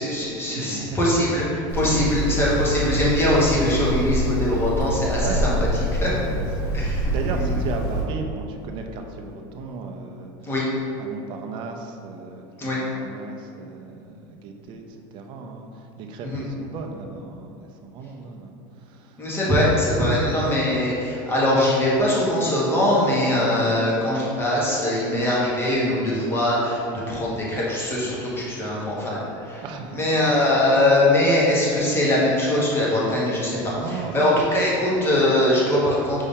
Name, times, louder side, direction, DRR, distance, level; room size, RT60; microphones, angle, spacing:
voice 1, 0.0-5.5 6.0-6.1 6.7-7.5 10.4-10.6 12.6-12.8 16.2-16.4 19.2-29.6 29.9-33.6 33.9-36.2, left 1 dB, 20° left, -6 dB, 1.1 m, -22 dB
voice 2, 0.6-1.0 1.8-2.1 5.2-5.7 6.1-10.5 11.0-19.5 20.0-20.1 27.0-27.2 29.6-30.4 31.7-31.8 33.5-34.1 34.6-34.9, right 4 dB, 45° right, 3 dB, 0.5 m, -35 dB
Hammer, 1.7-8.0, right 1 dB, 70° left, 1.2 m, -25 dB
5.3 x 2.7 x 3.6 m, 2.6 s
supercardioid pair, 140°, 12 cm